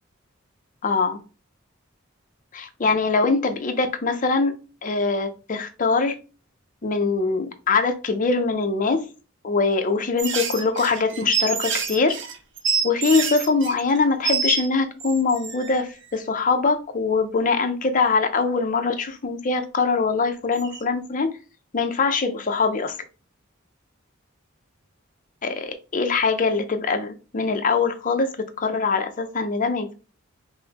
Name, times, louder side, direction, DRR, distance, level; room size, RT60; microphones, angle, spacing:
voice 1, 0.8-1.2 2.5-4.5 4.8-6.1 6.8-9.0 9.4-12.2 12.8-21.3 21.7-23.0 25.4-29.9, left 4 dB, 40° left, 0.5 m, -23 dB
sound 1, 10.2-14.7 15.0-15.8 20.6-20.8, right 6 dB, 60° right, 0.7 m, -27 dB
5.3 x 2.1 x 2.9 m
head